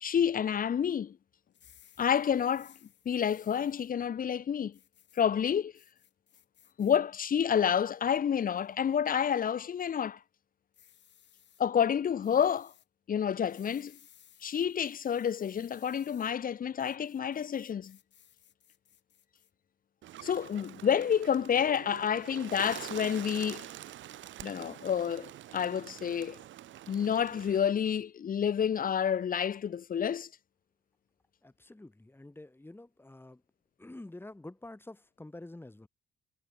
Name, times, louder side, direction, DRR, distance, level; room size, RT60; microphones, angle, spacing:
voice 1, 0.0-1.2 2.0-2.7 3.0-4.8 5.1-5.7 6.8-10.2 11.6-12.7 13.1-14.0 14.4-18.0 20.2-23.7 24.4-26.4 26.9-30.3, left 8 dB, 45° left, 0.9 m, -29 dB
sound 1, 1.5-3.9 4.7-5.2 5.7-7.0 7.4-8.0 8.6-8.9 10.7-11.6 12.2-12.9 13.4-16.3 16.8-19.5, left 10 dB, 65° left, 3.8 m, -61 dB
Bird, 20.0-27.6, right 13 dB, 75° right, 1.2 m, -46 dB
voice 2, 31.4-33.4 33.8-35.9, left 2 dB, 10° left, 3.5 m, -48 dB
cardioid pair, 90°, 20 cm